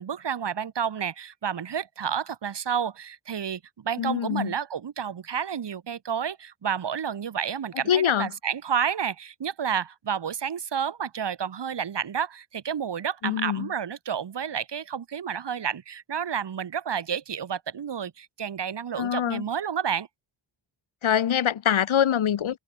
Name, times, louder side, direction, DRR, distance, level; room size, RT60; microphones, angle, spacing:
voice 1, 0.0-20.1, right 8 dB, 55° right, 4.2 m, -30 dB
voice 2, 4.0-4.5 7.9-8.3 13.2-13.7 19.0-19.4 21.0-22.6, left 9 dB, 75° left, 3.4 m, -24 dB
wide cardioid pair, 155°, 48 cm